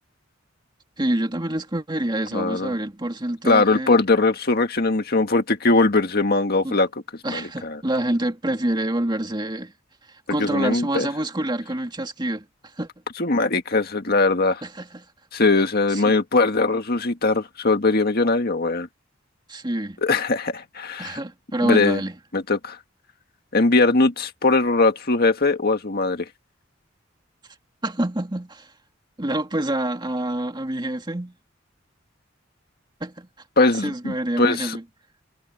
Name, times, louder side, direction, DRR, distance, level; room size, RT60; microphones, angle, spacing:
voice 1, 1.0-4.0 6.6-6.7 7.2-9.7 10.3-12.4 12.8-12.9 14.6-15.0 15.9-16.1 19.5-20.0 21.0-22.1 27.8-28.7 29.2-31.3 33.0-33.3 33.8-34.8, right 1 dB, 25° right, 2.3 m, -27 dB
voice 2, 2.3-2.7 3.4-6.9 7.3-7.8 10.4-11.1 13.2-14.6 15.3-18.9 20.0-21.2 21.6-22.0 22.3-22.8 23.5-26.3 33.6-34.8, left 3 dB, 50° left, 1.8 m, -20 dB
head